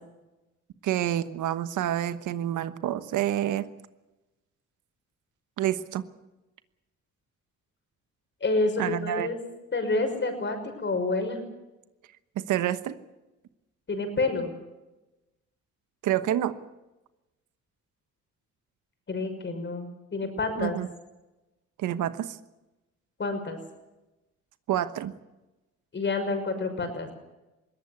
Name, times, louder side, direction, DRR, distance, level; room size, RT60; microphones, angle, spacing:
voice 1, 0.8-3.7 5.6-6.1 8.8-9.3 12.4-13.0 16.0-16.5 20.6-20.9 21.8-22.4 24.7-25.1, right 12 dB, 80° right, 12 dB, 1.2 m, -28 dB
voice 2, 8.4-9.4 9.7-11.4 13.9-14.5 19.1-20.8 23.2-23.6 25.9-27.1, left 3 dB, 40° left, 6 dB, 6.0 m, -28 dB
21.5 x 18.0 x 8.2 m, 1.0 s
cardioid pair, 90°, 30 cm